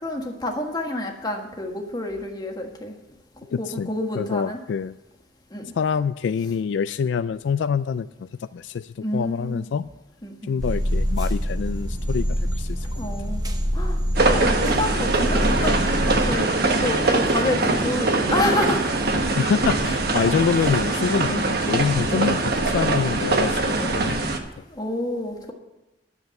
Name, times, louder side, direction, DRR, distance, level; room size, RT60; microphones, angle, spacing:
voice 1, 0.0-2.9 3.6-4.6 5.5-5.7 9.0-9.6 10.2-10.5 13.0-18.9 20.4-20.5 24.7-25.5, left 1 dB, 20° left, 2 dB, 1.5 m, -28 dB
voice 2, 3.5-3.9 4.2-4.9 5.8-9.9 10.5-13.0 19.3-24.2, left 6 dB, 75° left, 13 dB, 0.3 m, -26 dB
sound 1, 10.6-16.3, equal, 20° right, 0.9 m, -25 dB
sound 2, 14.1-24.4, right 2 dB, 60° right, 1.2 m, -22 dB
10.5 x 7.3 x 7.9 m, 1.0 s
head